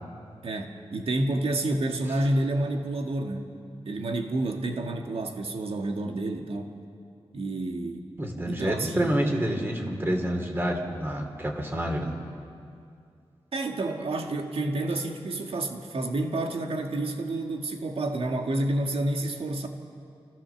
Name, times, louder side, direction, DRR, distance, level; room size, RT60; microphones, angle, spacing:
voice 1, 0.4-3.5 3.8-6.7 7.3-8.1 8.5-9.1 13.5-19.7, right 2 dB, 70° right, 3 dB, 1.9 m, -29 dB
voice 2, 8.2-12.1, right 1 dB, 25° right, 2 dB, 3.1 m, -28 dB
29.0 x 15.0 x 7.1 m, 2.4 s
wide cardioid pair, 105°, 10 cm